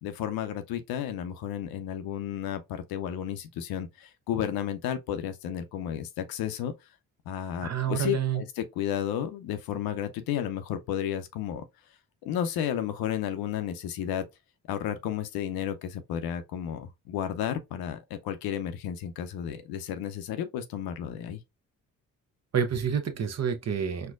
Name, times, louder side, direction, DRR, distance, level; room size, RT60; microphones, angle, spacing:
voice 1, 0.0-6.7 7.3-11.6 12.2-14.3 14.7-21.4, left 10 dB, 80° left, 0.6 m, -32 dB
voice 2, 7.6-8.4 22.5-24.1, right 7 dB, 45° right, 0.8 m, -28 dB
4.4 x 2.1 x 2.3 m
supercardioid pair, 45°, 36 cm